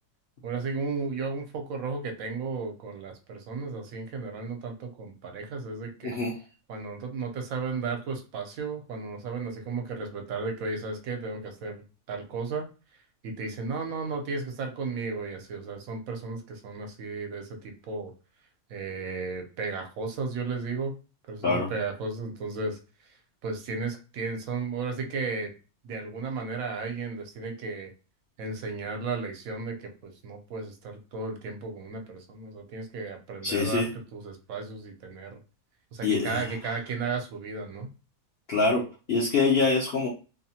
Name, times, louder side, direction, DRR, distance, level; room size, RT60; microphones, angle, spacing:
voice 1, 0.4-6.2 6.7-12.7 13.2-18.1 18.7-20.9 21.3-22.8 23.4-25.5 25.8-27.9 28.4-35.4 35.9-37.9, right 4 dB, 75° right, 3 dB, 1.0 m, -34 dB
voice 2, 6.0-6.3 21.4-21.7 33.4-33.9 36.0-36.4 38.5-40.1, left 4 dB, 55° left, -5 dB, 0.7 m, -25 dB
2.8 x 2.0 x 2.7 m, 0.33 s
omnidirectional pair, 1.5 m